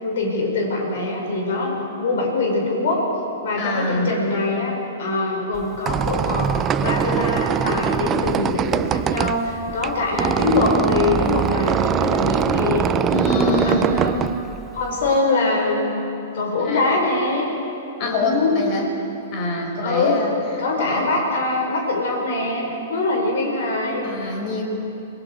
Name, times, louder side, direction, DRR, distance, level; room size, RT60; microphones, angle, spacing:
voice 1, 0.0-3.1 3.4-6.5 6.8-12.9 13.2-14.2 14.7-16.1 16.3-17.4 18.0-18.6 19.8-20.2 20.6-24.3, left 3 dB, 60° left, 0 dB, 5.4 m, -23 dB
voice 2, 3.6-4.2 13.1-13.8 16.6-16.8 18.0-18.9 19.3-20.3 20.8-21.1 24.0-24.6, left 2 dB, 40° left, 1 dB, 5.2 m, -25 dB
Squeak, 5.5-15.2, right 9 dB, 25° right, 0.5 m, -23 dB
28.5 x 21.5 x 4.8 m, 3.0 s
figure-of-eight pair, 105°, 0 cm